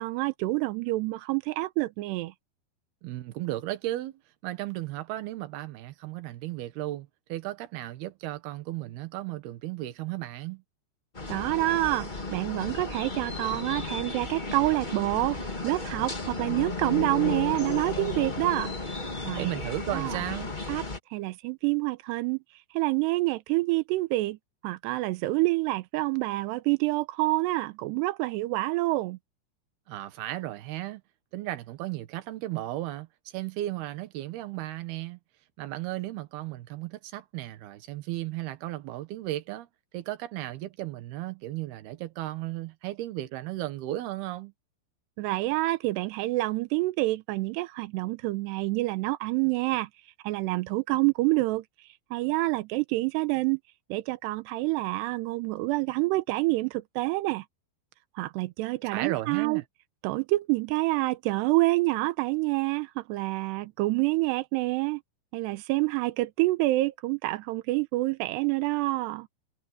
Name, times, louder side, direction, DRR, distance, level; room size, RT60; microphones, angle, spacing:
voice 1, 0.0-2.3 11.3-15.4 15.6-18.7 19.2-19.5 19.9-20.2 20.7-20.8 21.1-22.4 22.7-24.4 24.6-29.2 45.2-49.9 50.2-51.6 52.1-53.6 53.9-57.4 58.2-59.6 60.0-65.0 65.3-69.3, right 20 dB, 90° right, 2.8 m, -27 dB
voice 2, 3.0-10.6 19.3-20.5 29.9-31.0 31.3-35.2 35.6-39.7 39.9-44.5 58.9-59.6, right 16 dB, 70° right, 3.1 m, -35 dB
sound 1, 11.1-21.0, left 3 dB, 25° left, 0.9 m, -34 dB
omnidirectional pair, 4.9 m